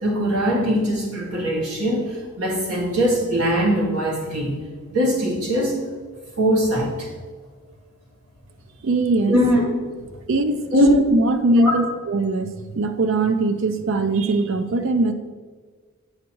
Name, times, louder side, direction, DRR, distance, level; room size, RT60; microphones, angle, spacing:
voice 1, 0.0-4.6 4.9-5.9 6.4-7.1 9.3-9.6 9.9-10.1 10.7-10.9 11.5-11.8, equal, 85° right, -3 dB, 2.0 m, -21 dB
voice 2, 8.8-9.3 10.3-15.1, right 2 dB, 60° right, 9 dB, 0.4 m, -21 dB
8.3 x 6.5 x 3.0 m, 1.5 s
head